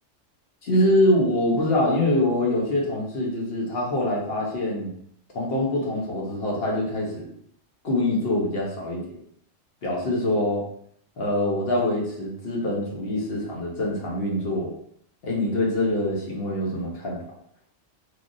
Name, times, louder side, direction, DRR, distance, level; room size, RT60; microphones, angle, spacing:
voice 1, 0.6-5.0 5.3-7.3 7.8-9.1 9.8-10.6 11.2-14.7 15.2-17.2, left 1 dB, 55° left, -2 dB, 1.0 m, -24 dB
3.3 x 2.5 x 2.5 m, 0.67 s
omnidirectional pair, 1.3 m